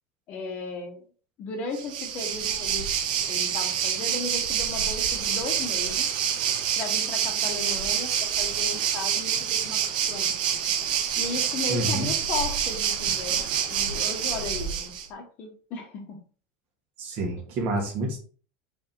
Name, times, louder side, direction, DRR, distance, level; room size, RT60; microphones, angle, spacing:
voice 1, 0.3-1.0 1.4-2.9 3.3-6.1 6.8-10.3 11.2-16.2, left 4 dB, 35° left, 4 dB, 1.2 m, -36 dB
Waves surf, 1.7-15.1, right 8 dB, 85° right, 1.2 m, -27 dB
voice 2, 11.7-12.1 17.0-18.2, right 1 dB, 40° right, 3 dB, 1.7 m, -28 dB
5.0 x 4.2 x 4.5 m, 0.39 s
supercardioid pair, 170°, 4 cm